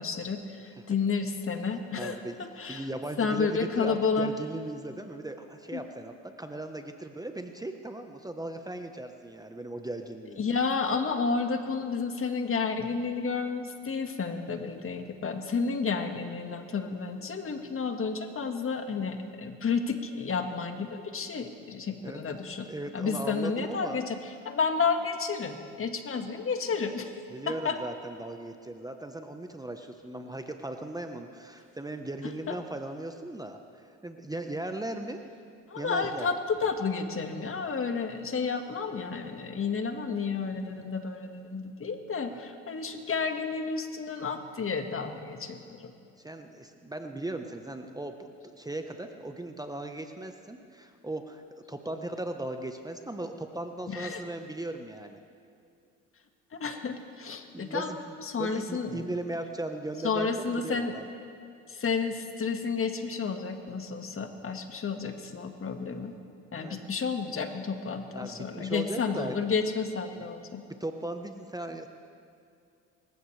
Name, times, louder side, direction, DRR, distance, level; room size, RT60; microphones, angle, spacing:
voice 1, 0.0-2.9 3.2-4.3 5.7-5.8 10.4-22.7 22.9-27.2 27.5-27.8 32.5-32.6 35.7-45.9 53.9-54.2 56.5-57.9 58.2-59.0 60.0-61.0 61.7-66.1 66.5-70.6, left 5 dB, 35° left, 5 dB, 1.8 m, -31 dB
voice 2, 2.0-2.4 2.7-10.6 22.0-22.2 22.7-24.0 27.3-35.2 35.8-36.3 42.3-42.4 46.2-51.4 51.7-55.2 57.5-61.0 66.6-66.8 68.1-69.3 70.8-71.9, right 1 dB, 10° right, 5 dB, 1.1 m, -38 dB
25.5 x 15.0 x 3.4 m, 2.5 s
hypercardioid pair, 65°, 36 cm